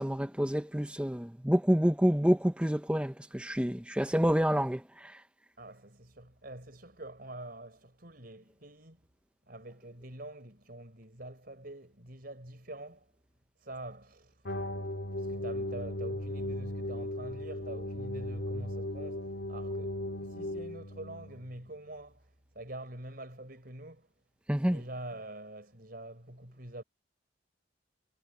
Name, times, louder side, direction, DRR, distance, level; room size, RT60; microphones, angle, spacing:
voice 1, 0.0-4.8 24.5-24.8, equal, 5° right, 0.8 m, -28 dB
voice 2, 5.6-9.0 9.5-13.1 13.6-14.4 15.2-22.3 22.5-24.1 24.6-26.8, right 1 dB, 50° right, 5.0 m, -46 dB
sound 1, 14.4-21.5, left 1 dB, 60° left, 2.3 m, -37 dB
head